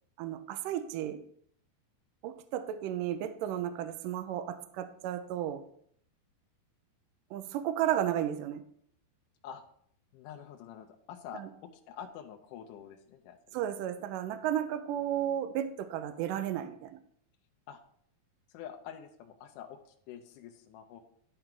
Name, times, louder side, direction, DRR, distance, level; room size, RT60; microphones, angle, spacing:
voice 1, 0.2-1.2 2.2-5.6 7.3-8.6 11.3-11.5 13.5-17.0, right 11 dB, 90° right, 9 dB, 1.9 m, -33 dB
voice 2, 10.1-13.6 17.7-17.8 18.5-21.0, left 9 dB, 80° left, 3 dB, 1.9 m, -47 dB
11.5 x 4.6 x 3.7 m, 0.64 s
omnidirectional pair, 4.5 m